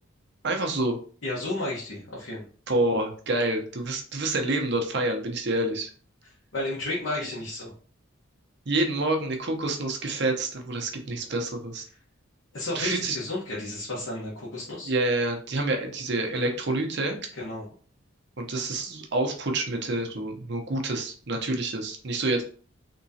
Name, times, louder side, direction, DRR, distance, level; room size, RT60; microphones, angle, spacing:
voice 1, 0.4-1.0 2.7-5.9 8.7-11.9 12.7-13.2 14.8-17.2 18.4-22.4, right 2 dB, 55° right, 3 dB, 0.8 m, -27 dB
voice 2, 1.2-2.4 6.5-7.7 12.5-14.9 17.4-17.6, left 2 dB, 65° left, -6 dB, 1.1 m, -32 dB
3.6 x 3.0 x 2.7 m, 0.42 s
head